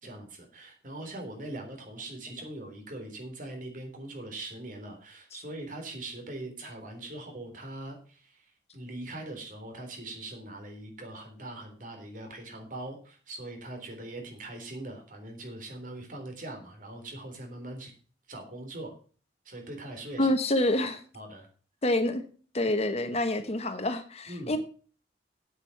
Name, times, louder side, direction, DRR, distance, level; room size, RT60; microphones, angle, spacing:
voice 1, 0.0-17.9 18.3-18.9 19.4-20.3 21.1-21.5 24.3-24.6, right 1 dB, 50° right, 3 dB, 3.5 m, -41 dB
voice 2, 20.2-21.0 21.8-22.2 22.5-24.6, left 1 dB, 35° left, 9 dB, 1.2 m, -27 dB
8.4 x 8.2 x 6.9 m, 0.40 s
head